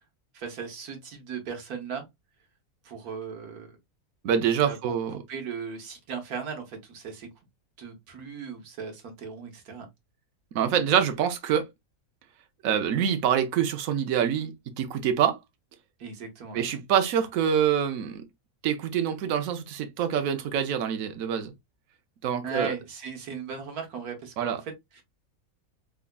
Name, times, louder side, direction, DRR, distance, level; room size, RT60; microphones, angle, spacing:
voice 1, 0.3-2.1 2.8-3.8 4.6-4.8 5.1-7.3 7.8-9.9 16.0-16.7 22.4-24.6 24.9-25.0, right 6 dB, 85° right, 1.6 m, -37 dB
voice 2, 4.2-5.2 10.5-11.7 12.6-15.4 16.5-18.2 18.6-21.5 22.2-22.7 24.4-24.6, right 8 dB, 70° right, 1.1 m, -25 dB
3.6 x 3.4 x 2.2 m
omnidirectional pair, 1.5 m